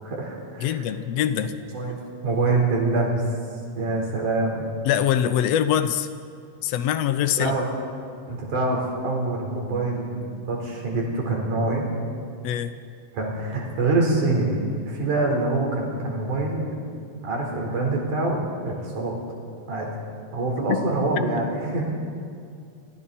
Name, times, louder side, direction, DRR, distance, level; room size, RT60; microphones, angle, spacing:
voice 1, 0.0-0.8 1.4-2.0 2.2-3.2 3.8-4.7 7.4-7.6 8.3-11.9 13.1-16.7 17.2-19.2 19.7-19.9 20.3-21.8, right 2 dB, 65° right, -1 dB, 5.6 m, -25 dB
voice 2, 0.6-1.6 4.8-6.1 6.6-7.5 12.4-12.8 20.7-21.1, left 10 dB, 80° left, 11 dB, 1.5 m, -23 dB
30.0 x 23.5 x 4.3 m, 2.4 s
omnidirectional pair, 4.0 m